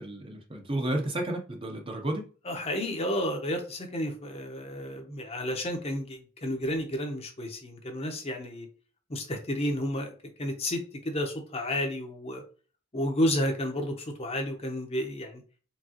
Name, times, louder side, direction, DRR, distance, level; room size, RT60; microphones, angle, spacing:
voice 1, 0.0-2.3, right 1 dB, 25° right, 2 dB, 0.7 m, -32 dB
voice 2, 2.4-8.7 9.1-10.1 10.4-12.4 12.9-15.4, left 1 dB, 30° left, 3 dB, 0.8 m, -31 dB
4.7 x 3.5 x 2.9 m, 0.38 s
head